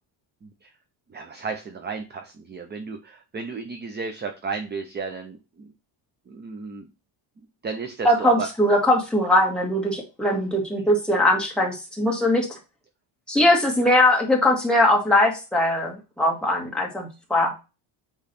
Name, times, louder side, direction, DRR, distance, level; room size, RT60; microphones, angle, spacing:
voice 1, 0.4-0.7 1.1-5.7 6.3-6.9 7.6-8.5, right 4 dB, 20° right, 5 dB, 0.5 m, -33 dB
voice 2, 8.0-12.5 13.3-17.5, left 1 dB, ahead, -2 dB, 1.8 m, -20 dB
8.4 x 3.1 x 4.1 m, 0.29 s
cardioid pair, 170°, 48 cm